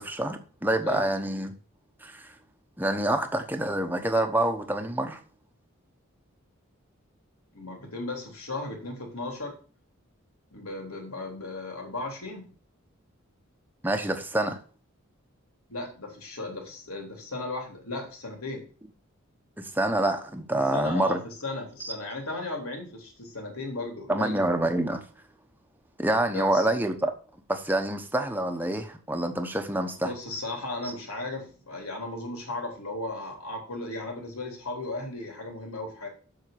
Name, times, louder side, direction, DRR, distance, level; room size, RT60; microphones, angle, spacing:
voice 1, 0.0-1.5 2.0-2.3 2.8-5.2 13.8-14.6 19.6-21.2 21.8-21.9 24.1-25.0 26.0-27.1 27.5-30.1, right 1 dB, 10° right, 1.0 m, -27 dB
voice 2, 7.5-9.6 10.5-12.5 15.7-18.6 20.7-24.4 26.3-26.7 30.0-36.1, left 2 dB, 90° left, 3.6 m, -36 dB
7.8 x 6.7 x 6.8 m
head